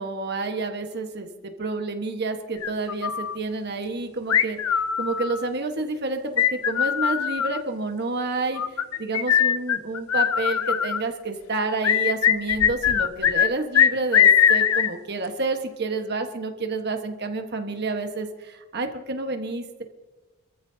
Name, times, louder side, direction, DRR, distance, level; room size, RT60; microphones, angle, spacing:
voice 1, 0.0-4.6 5.0-8.6 9.0-19.8, right 3 dB, 50° right, 5 dB, 1.4 m, -29 dB
sound 1, 2.6-3.4 4.3-5.5 6.4-7.6 8.6-11.0 11.8-13.5 13.7-14.9, left 8 dB, 75° left, 0.6 m, -21 dB
26.5 x 14.5 x 2.8 m, 1.2 s
head